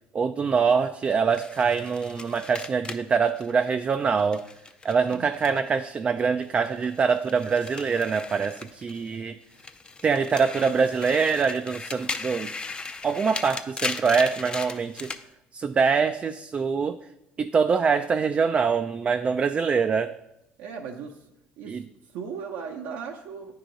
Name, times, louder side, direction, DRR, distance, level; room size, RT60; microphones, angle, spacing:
voice 1, 0.1-4.5 4.8-9.4 10.0-12.5 13.0-15.1 15.5-17.0 17.4-20.2 21.7-21.8, right 5 dB, 30° right, 8 dB, 0.3 m, -24 dB
sound 1, 1.3-5.9 6.2-9.2 9.5-15.2, left 3 dB, 25° left, 0.6 m, -37 dB
voice 2, 20.6-21.2 21.6-21.8 22.1-23.5, right 6 dB, 75° right, 1 dB, 0.7 m, -37 dB
9.0 x 4.8 x 3.8 m, 0.85 s
supercardioid pair, 85°, 4 cm